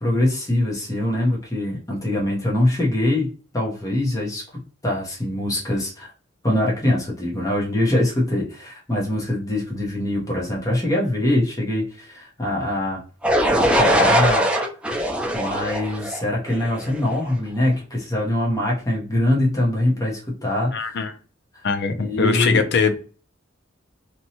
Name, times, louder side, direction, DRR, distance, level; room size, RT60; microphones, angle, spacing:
voice 1, 0.0-3.3 3.5-6.1 6.4-13.0 13.6-14.5 15.3-21.0 22.0-22.6, left 1 dB, 15° left, 0.7 m, -23 dB
sound 1, 13.2-17.1, right 1 dB, 5° right, 0.4 m, -21 dB
voice 2, 20.7-21.1 21.6-23.0, left 5 dB, 60° left, 0.5 m, -21 dB
2.9 x 2.2 x 2.7 m
head